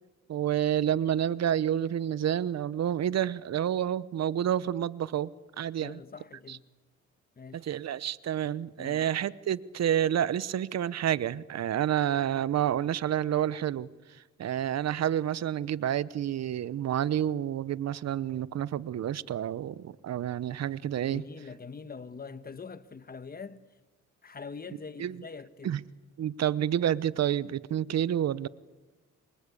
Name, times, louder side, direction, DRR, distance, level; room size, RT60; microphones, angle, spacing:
voice 1, 0.3-5.3 5.6-6.0 6.5-6.6 7.5-13.9 14.4-21.2 25.0-25.2 25.6-25.8 26.2-28.5, right 10 dB, 60° right, 1.0 m, -29 dB
voice 2, 5.8-6.6 7.4-7.7 8.8-9.1 14.6-14.8 21.1-23.7 24.2-25.7, left 5 dB, 30° left, 1.4 m, -44 dB
29.0 x 24.0 x 8.5 m
cardioid pair, 90°, 30 cm